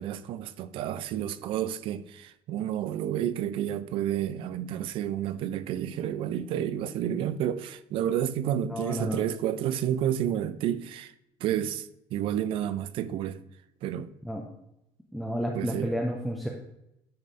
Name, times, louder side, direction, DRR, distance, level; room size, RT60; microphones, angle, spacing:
voice 1, 0.0-11.1 11.4-13.4 13.8-14.1 15.5-15.9, right 10 dB, 60° right, 0.5 m, -30 dB
voice 2, 8.7-9.2 14.2-14.4 15.1-16.5, equal, ahead, 0.7 m, -31 dB
9.7 x 3.2 x 4.1 m
cardioid pair, 135°, 10 cm